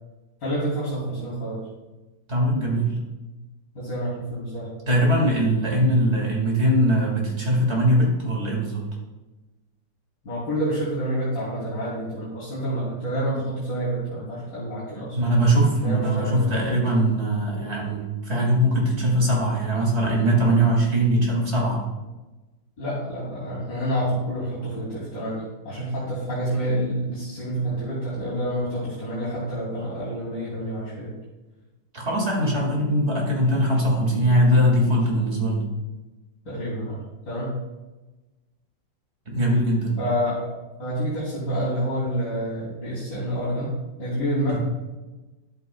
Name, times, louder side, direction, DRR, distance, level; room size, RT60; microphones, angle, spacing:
voice 1, 0.4-1.6 3.8-4.7 5.7-5.8 10.2-15.2 15.8-16.6 22.8-31.1 36.5-37.6 40.0-40.5 40.8-43.7 44.0-44.6, right 1 dB, 75° left, -10 dB, 3.7 m, -28 dB
voice 2, 2.3-3.0 4.9-8.8 15.2-21.8 31.9-35.6 39.3-40.0 44.5-44.6, right 1 dB, 35° right, -2 dB, 2.3 m, -21 dB
12.5 x 8.3 x 2.3 m, 1.1 s
omnidirectional pair, 2.0 m